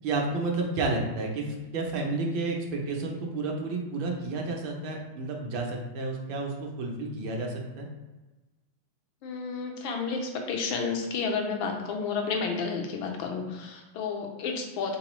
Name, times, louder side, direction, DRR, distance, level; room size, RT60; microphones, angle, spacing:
voice 1, 0.0-7.9, right 3 dB, 70° right, 1 dB, 1.4 m, -31 dB
voice 2, 9.2-15.0, left 5 dB, 80° left, 2 dB, 1.4 m, -31 dB
3.9 x 3.8 x 3.0 m, 1.1 s
omnidirectional pair, 2.3 m